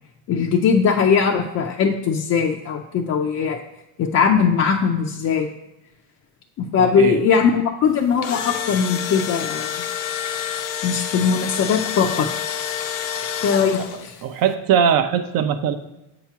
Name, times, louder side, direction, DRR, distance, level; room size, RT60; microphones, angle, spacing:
voice 1, 0.3-3.6 4.0-5.5 6.6-9.7 10.8-12.3 13.4-14.2, left 6 dB, 35° left, 1 dB, 0.5 m, -20 dB
voice 2, 6.8-7.2 14.2-15.8, right 8 dB, 50° right, 9 dB, 0.7 m, -20 dB
Engine / Drill, 8.0-14.2, left 9 dB, 75° left, 0.8 m, -28 dB
7.9 x 3.0 x 5.7 m, 0.93 s
cardioid pair, 130°, 45 cm